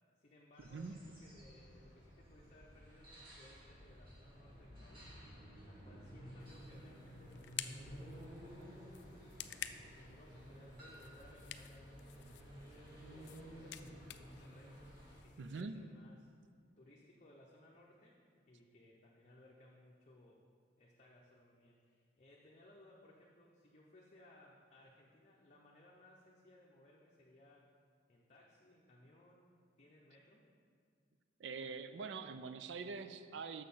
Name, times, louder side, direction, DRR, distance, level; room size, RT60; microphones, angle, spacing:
voice 1, 0.2-5.1 5.5-9.3 9.8-14.8 15.2-16.3 16.8-18.2 18.5-20.4 20.8-27.6 28.1-29.5 29.8-30.5, left 1 dB, 40° left, -3 dB, 0.8 m, -63 dB
sound 1, 0.6-15.2, equal, 50° right, 2.1 m, -54 dB
voice 2, 0.7-1.0 15.4-15.8 31.4-33.6, right 4 dB, 75° right, 10 dB, 0.4 m, -44 dB
sound 2, 6.4-15.6, left 11 dB, 60° left, 0.3 m, -52 dB
6.8 x 6.3 x 5.6 m, 2.1 s
head